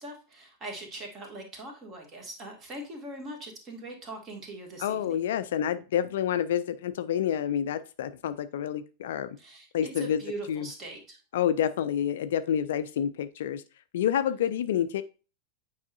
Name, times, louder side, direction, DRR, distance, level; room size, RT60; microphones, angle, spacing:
voice 1, 0.0-5.2 9.4-9.7 10.0-11.2, right 2 dB, 30° right, 2 dB, 2.1 m, -41 dB
voice 2, 4.8-9.4 9.7-10.2 10.5-10.7 11.3-13.6 13.9-15.0, left 9 dB, 60° left, 13 dB, 0.4 m, -28 dB
8.3 x 4.8 x 2.6 m, 0.34 s
figure-of-eight pair, 90°, 0 cm